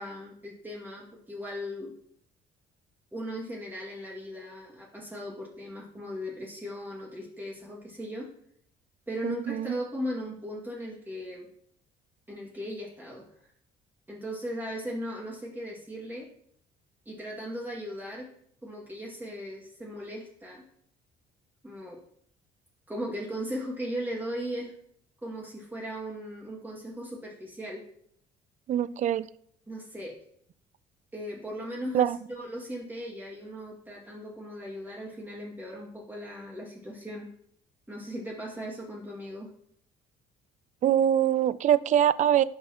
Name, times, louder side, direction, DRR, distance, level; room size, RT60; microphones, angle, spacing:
voice 1, 0.0-1.9 3.1-8.3 9.1-11.5 12.3-13.3 14.1-16.3 17.1-18.3 18.6-20.6 21.6-22.0 22.9-24.7 25.2-27.8 29.7-30.2 31.1-37.3 37.9-39.5, equal, 10° right, -4 dB, 2.2 m, -38 dB
voice 2, 9.2-9.8 28.7-29.3 31.9-32.2 40.8-42.4, right 10 dB, 45° right, 18 dB, 0.4 m, -23 dB
11.5 x 5.5 x 3.0 m, 0.65 s
cardioid pair, 110°, 17 cm